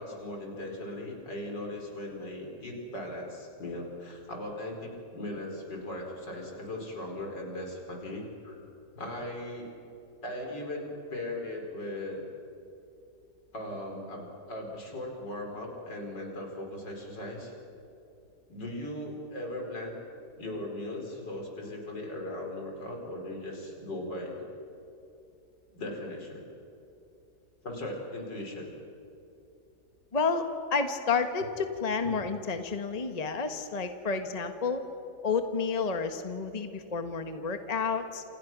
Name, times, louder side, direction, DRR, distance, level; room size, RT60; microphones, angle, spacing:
voice 1, 0.0-8.6 8.9-9.7 10.2-12.2 13.5-17.5 18.5-20.0 20.4-24.4 25.7-26.4 27.6-28.7, left 1 dB, 85° left, 1 dB, 5.2 m, -38 dB
voice 2, 30.1-34.8 35.2-38.2, left 5 dB, 25° left, 7 dB, 1.4 m, -30 dB
28.0 x 27.5 x 6.1 m, 2.7 s
omnidirectional pair, 1.9 m